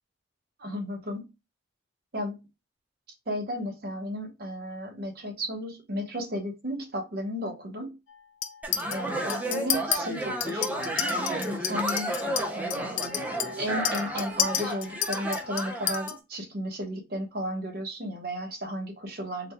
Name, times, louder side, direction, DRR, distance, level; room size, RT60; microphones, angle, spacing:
voice 1, 0.6-1.2 2.1-2.3 3.3-7.9 8.9-12.1 12.5-13.3 13.6-19.5, equal, 50° right, 3 dB, 1.0 m, -34 dB
Chink clink, 8.4-9.0 9.3-10.0 10.4-16.1, left 9 dB, 75° left, 0.5 m, -31 dB
sound 1, 8.6-16.2, equal, 10° right, 0.4 m, -32 dB
3.9 x 2.2 x 3.1 m, 0.25 s
head